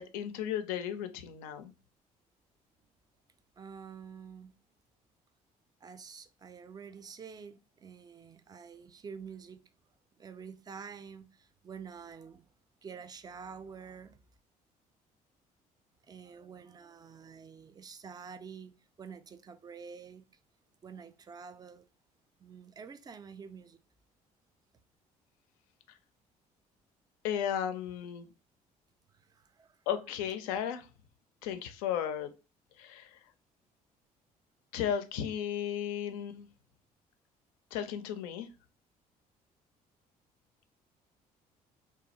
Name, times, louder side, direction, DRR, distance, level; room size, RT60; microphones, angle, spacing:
voice 1, 0.0-1.7 27.2-28.3 29.9-30.9 31.4-32.3 32.8-33.1 34.7-36.5 37.7-38.5, left 9 dB, 65° left, 0.4 m, -34 dB
voice 2, 3.6-4.5 5.8-9.7 10.2-12.5 12.8-14.2 16.0-20.2 20.8-21.9 22.4-23.8 29.1-29.8, right 6 dB, 20° right, 0.3 m, -48 dB
3.1 x 2.3 x 2.8 m
figure-of-eight pair, 50°, 20 cm